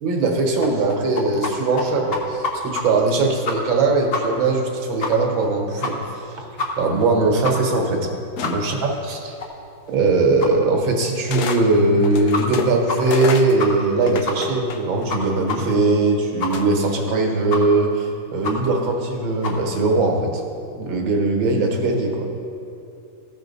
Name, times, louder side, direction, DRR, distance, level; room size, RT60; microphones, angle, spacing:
voice 1, 0.0-6.5 6.8-8.0 8.4-9.4 9.9-20.4 20.8-22.3, right 3 dB, 70° right, 1 dB, 1.7 m, -20 dB
sound 1, 0.6-1.5 1.8-1.9 2.1-2.8 3.1-3.2 3.5-3.8 4.1-4.2 4.5-4.6 5.0-5.1 5.4-5.5 5.8-6.2 6.6-6.7 7.0-7.1 7.4-7.5 7.9-8.0 8.4-8.5 8.9-9.0 9.4-9.5 9.9-10.0 10.4-10.5 11.0-11.1 11.5-11.6 11.9-12.0 12.3-12.6 12.9-13.0 13.2-13.3 13.6-13.9 14.2-14.4 14.7-14.8 15.1-15.2 15.5-15.6 15.9-16.0 16.4-16.5 16.9-17.0 17.5-17.6 17.9-18.0 18.4-18.5 18.9-19.0 19.4-19.5, left 4 dB, 55° left, 0.7 m, -27 dB
sound 2, 8.4-8.9 10.0-10.1 11.3-11.6 12.0-15.1 16.5-17.0, left 6 dB, 75° left, 0.9 m, -30 dB
14.5 x 5.1 x 4.0 m, 2.7 s
omnidirectional pair, 2.2 m